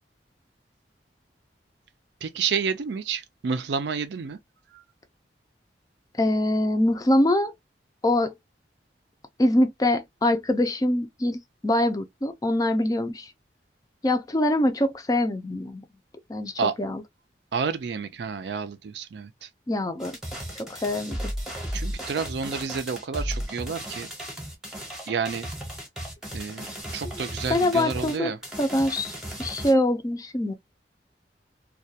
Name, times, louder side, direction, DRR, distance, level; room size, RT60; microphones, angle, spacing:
voice 1, 2.2-4.4 4.7-4.8 16.6-16.8 17.5-19.5 21.7-24.1 25.1-25.5 26.3-26.7 26.9-28.4, right 5 dB, 75° right, 0.4 m, -30 dB
voice 2, 6.2-7.5 8.0-8.3 9.4-13.3 14.0-15.8 16.3-17.0 19.7-20.2 20.7-21.3 27.5-28.3 28.6-30.5, left 1 dB, 20° left, 0.4 m, -24 dB
sound 1, 20.0-29.7, equal, 5° right, 0.7 m, -35 dB
2.3 x 2.2 x 2.6 m
head